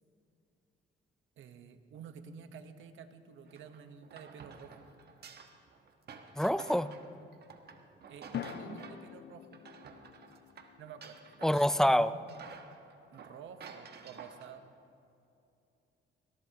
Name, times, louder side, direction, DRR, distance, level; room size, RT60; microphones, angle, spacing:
voice 1, 1.4-4.9 8.1-9.6 10.8-12.3 13.1-14.7, right 6 dB, 75° right, 9 dB, 1.0 m, -50 dB
sound 1, 2.4-3.5 8.3-12.7, left 9 dB, 60° left, 0.6 m, -47 dB
sound 2, 3.5-9.1 9.4-11.9 12.3-14.6, right 5 dB, 55° right, 1.3 m, -51 dB
voice 2, 6.4-6.9 11.4-12.1, equal, 5° left, 14 dB, 0.4 m, -26 dB
21.5 x 17.5 x 2.9 m, 2.7 s
cardioid pair, 90°, 20 cm